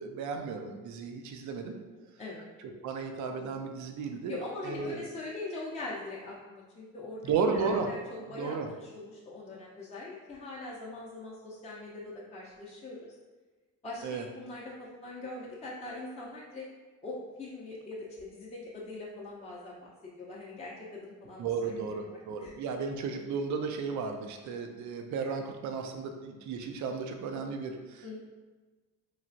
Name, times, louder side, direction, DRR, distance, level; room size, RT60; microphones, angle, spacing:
voice 1, 0.0-1.7 2.8-4.4 4.6-5.0 7.2-7.9 8.4-8.7 14.0-14.2 21.4-28.2, right 5 dB, 55° right, 5 dB, 0.5 m, -34 dB
voice 2, 1.6-2.4 4.3-7.2 7.5-8.0 8.3-13.2 13.8-16.7 17.0-19.9 20.1-22.5 28.0-28.2, left 2 dB, 20° left, -5 dB, 0.6 m, -42 dB
3.1 x 2.4 x 2.5 m, 1.3 s
supercardioid pair, 75°, 35 cm